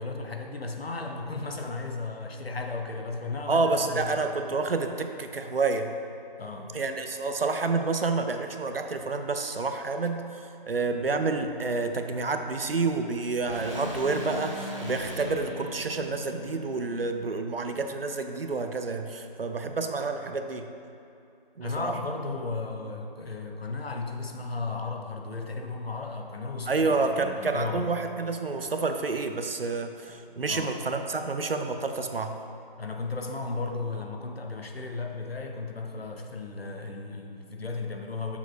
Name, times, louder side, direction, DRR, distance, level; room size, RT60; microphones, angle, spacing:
voice 1, 0.0-4.2 6.4-6.8 21.6-27.9 30.1-30.2 30.5-30.8 32.8-38.4, left 3 dB, 90° left, 3 dB, 0.8 m, -35 dB
voice 2, 3.5-5.9 6.7-10.3 10.7-20.7 21.6-21.9 26.7-32.3, right 3 dB, 75° right, 6 dB, 0.6 m, -29 dB
sound 1, 10.9-18.6, equal, 55° left, 0.6 m, -48 dB
sound 2, 13.4-17.6, left 1 dB, 35° right, 0.8 m, -39 dB
7.0 x 6.6 x 2.5 m, 2.7 s
figure-of-eight pair, 175°, 29 cm